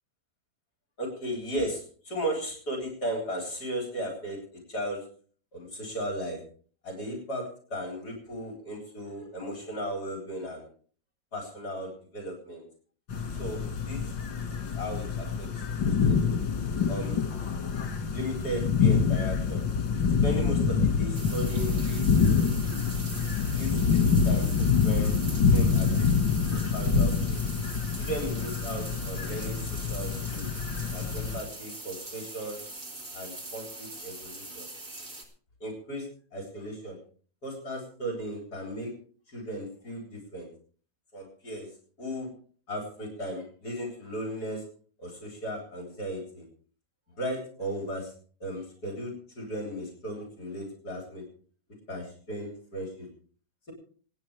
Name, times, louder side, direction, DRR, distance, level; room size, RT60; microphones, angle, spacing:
voice 1, 1.0-5.0 5.5-6.4 6.8-10.6 11.3-12.6 13.4-14.0 14.6-15.5 16.1-16.2 16.9-17.4 18.1-19.6 20.2-22.1 23.5-25.1 25.5-26.4 26.7-27.4 27.9-30.5 30.9-32.6 33.1-34.7 35.6-36.1 36.3-37.0 37.4-38.9 39.3-40.5 41.1-41.7 42.0-42.3 42.7-44.6 45.0-46.4 47.2-48.1 48.4-51.2 51.9-53.1, right 1 dB, 55° left, 0 dB, 4.5 m, -36 dB
sound 1, 13.1-31.4, left 5 dB, 80° left, 2.7 m, -26 dB
sound 2, 21.1-35.2, right 2 dB, 45° right, 3.4 m, -42 dB
27.0 x 9.5 x 3.4 m, 0.43 s
omnidirectional pair, 2.0 m